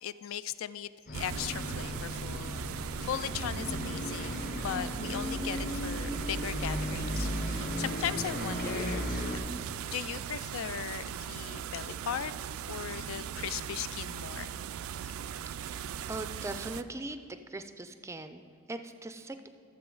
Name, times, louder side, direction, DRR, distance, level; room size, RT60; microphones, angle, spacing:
voice 1, 0.0-9.0 9.3-9.4 9.9-12.3 12.7-14.5 15.0-15.1, left 9 dB, 70° left, 0.3 m, -38 dB
Bus, 1.1-9.4, left 1 dB, 45° left, 1.1 m, -36 dB
sound 1, 1.1-16.8, right 8 dB, 85° right, 0.3 m, -39 dB
voice 2, 15.6-17.2 17.5-19.5, right 2 dB, 15° right, 0.4 m, -41 dB
13.5 x 7.1 x 3.8 m
head